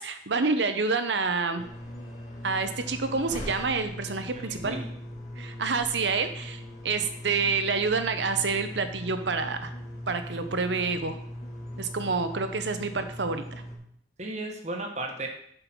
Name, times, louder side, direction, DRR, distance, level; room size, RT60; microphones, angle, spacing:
voice 1, 0.0-1.6 2.4-4.8 5.4-9.7 10.1-11.2 11.8-13.4, right 4 dB, 80° right, 9 dB, 0.9 m, -28 dB
sound 1, 1.6-13.8, equal, 40° left, 2.1 m, -40 dB
voice 2, 4.3-4.9 14.2-15.3, right 2 dB, 40° right, 2 dB, 1.4 m, -35 dB
7.8 x 5.5 x 6.1 m, 0.67 s
head